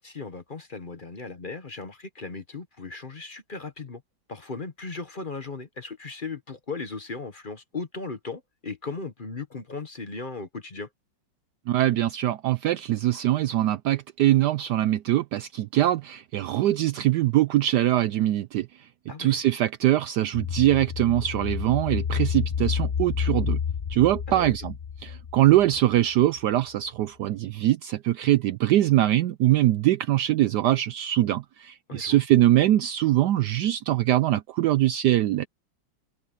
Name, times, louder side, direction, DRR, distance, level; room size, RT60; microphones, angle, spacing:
voice 1, 0.0-4.0 4.3-10.9 19.1-19.4 24.3-24.5 31.9-32.2, left 4 dB, 30° left, 1.1 m, -37 dB
voice 2, 11.7-18.7 19.2-23.6 23.9-24.7 25.0-35.5, right 14 dB, 70° right, 1.1 m, -22 dB
sound 1, 20.3-26.0 26.4-26.5, left 7 dB, 75° left, 0.4 m, -30 dB
open air
omnidirectional pair, 2.0 m